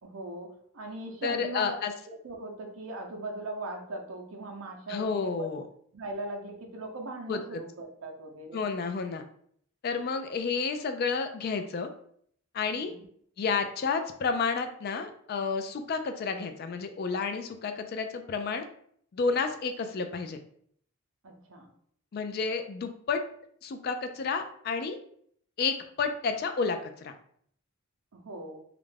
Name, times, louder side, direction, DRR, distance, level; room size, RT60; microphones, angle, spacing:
voice 1, 0.0-1.7 2.0-5.5 5.9-8.7 12.8-13.1 21.2-21.7 28.1-28.6, right 2 dB, 80° right, 2 dB, 0.6 m, -39 dB
voice 2, 1.2-1.9 4.9-5.6 7.3-7.6 8.5-9.2 9.8-11.9 12.5-12.9 13.4-18.7 19.1-20.4 22.1-23.2 23.6-25.0 25.6-27.1, left 5 dB, 45° left, 7 dB, 0.3 m, -31 dB
2.4 x 2.1 x 3.1 m, 0.63 s
head